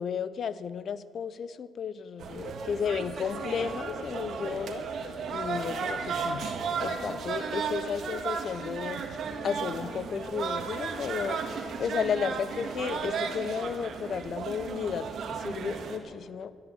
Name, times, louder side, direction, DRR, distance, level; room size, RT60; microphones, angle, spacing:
voice 1, 0.0-6.5 6.8-9.0 9.4-15.1 15.3-16.5, left 7 dB, 55° left, 16 dB, 0.6 m, -33 dB
sound 1, 2.2-16.0, right 5 dB, 65° right, 1.7 m, -34 dB
12.5 x 11.0 x 8.8 m, 2.3 s
cardioid pair, 90°, 0 cm